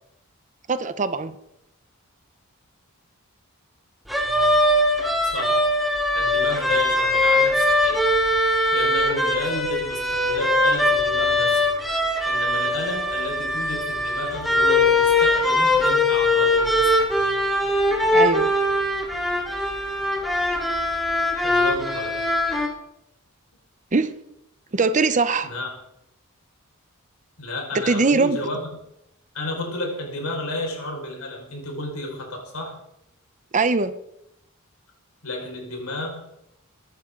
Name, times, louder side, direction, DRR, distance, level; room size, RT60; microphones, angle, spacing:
voice 1, 0.7-1.4 18.1-18.5 23.9-24.2 24.7-25.5 27.7-28.4 33.5-33.9, right 3 dB, 35° right, 12 dB, 0.7 m, -21 dB
sound 1, 4.1-22.7, left 1 dB, ahead, 2.3 m, -21 dB
voice 2, 5.2-5.6 6.1-8.0 8.7-11.7 12.3-17.1 21.4-22.2 25.4-25.7 27.4-28.7 29.3-32.8 35.2-36.3, left 1 dB, 75° left, 0 dB, 5.1 m, -32 dB
23.0 x 11.0 x 3.8 m, 0.83 s
head